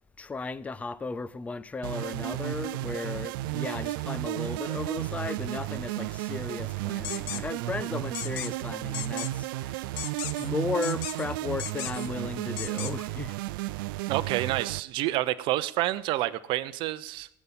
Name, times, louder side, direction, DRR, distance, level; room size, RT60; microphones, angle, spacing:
voice 1, 0.2-9.9 10.4-13.4, left 4 dB, 10° left, 0.5 m, -35 dB
sound 1, 1.8-14.8, right 18 dB, 65° right, 0.5 m, -33 dB
sound 2, 7.0-7.4 8.1-8.5 8.9-9.3 10.0-10.5 10.8-11.2 11.6-12.1 12.6-12.9, left 13 dB, 60° left, 0.9 m, -36 dB
voice 2, 14.1-17.3, right 16 dB, 45° right, 0.8 m, -28 dB
17.5 x 7.2 x 8.8 m
supercardioid pair, 140°, 12 cm